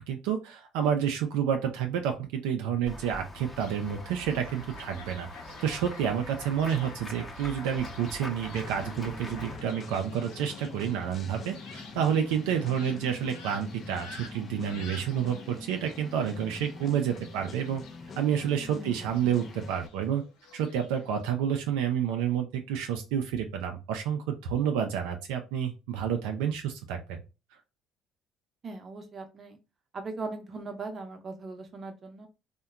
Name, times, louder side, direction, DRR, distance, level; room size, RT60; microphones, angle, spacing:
voice 1, 0.0-5.3 5.6-17.8 18.2-20.2 20.5-27.2, right 8 dB, 85° right, 4 dB, 0.3 m, -29 dB
Run / Walk footsteps / Bell, 2.9-9.6, left 1 dB, 15° left, 0.8 m, -43 dB
Fowl, 3.6-21.2, left 4 dB, 90° left, 0.7 m, -50 dB
sound 1, 8.5-19.9, left 3 dB, 45° left, 0.5 m, -44 dB
voice 2, 28.6-29.6 29.9-32.3, right 3 dB, 40° right, 5 dB, 0.6 m, -39 dB
2.7 x 2.1 x 2.3 m, 0.29 s
supercardioid pair, 70°, 0 cm